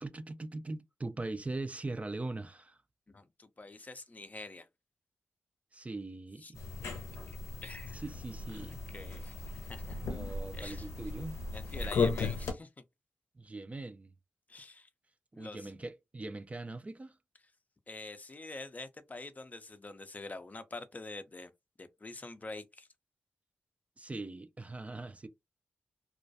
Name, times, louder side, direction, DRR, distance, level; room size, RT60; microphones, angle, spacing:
voice 1, 0.0-2.8 5.7-6.6 7.9-8.8 10.0-11.4 13.4-14.1 15.3-17.2 24.0-25.3, right 2 dB, 30° right, 0.4 m, -41 dB
voice 2, 3.1-4.7 6.4-6.5 7.3-8.0 8.5-10.0 10.5-10.9 11.5-12.8 14.5-14.9 15.3-15.7 17.9-21.5 21.8-22.9, left 2 dB, 35° left, 0.5 m, -46 dB
sound 1, 6.5-12.5, left 4 dB, 85° left, 0.6 m, -36 dB
2.3 x 2.2 x 2.6 m
supercardioid pair, 45°, 5 cm